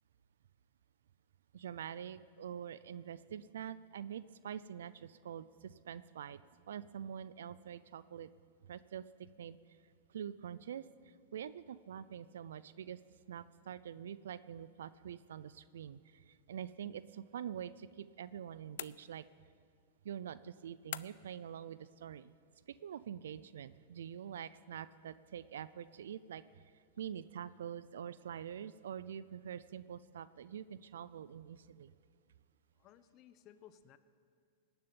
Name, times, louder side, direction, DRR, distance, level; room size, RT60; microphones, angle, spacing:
voice 1, 1.5-6.4 6.7-8.3 8.7-9.6 10.1-10.9 11.3-13.0 13.3-19.2 20.0-22.3 22.8-26.4 27.0-31.9, right 9 dB, 75° right, 16 dB, 0.4 m, -45 dB
sound 1, 18.8-19.5 20.9-21.4, left 12 dB, 70° left, 0.4 m, -46 dB
voice 2, 32.8-34.0, left 10 dB, 40° left, 12 dB, 0.9 m, -59 dB
18.5 x 6.8 x 8.8 m, 2.2 s
hypercardioid pair, 110°, 0 cm